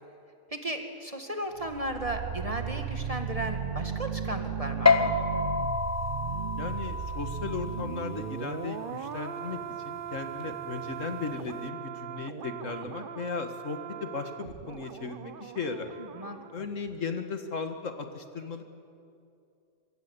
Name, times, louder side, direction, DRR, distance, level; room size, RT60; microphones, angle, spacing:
voice 1, 0.5-5.1 16.2-16.4, right 1 dB, 25° right, 4 dB, 2.0 m, -35 dB
sound 1, 1.5-16.5 16.8-17.0, right 8 dB, 50° right, 0.7 m, -37 dB
sound 2, 4.9-11.6, left 4 dB, 15° left, 0.7 m, -30 dB
voice 2, 6.6-15.9 16.5-18.6, left 4 dB, 60° left, 7 dB, 1.9 m, -36 dB
25.0 x 23.5 x 8.2 m, 2.5 s
omnidirectional pair, 1.5 m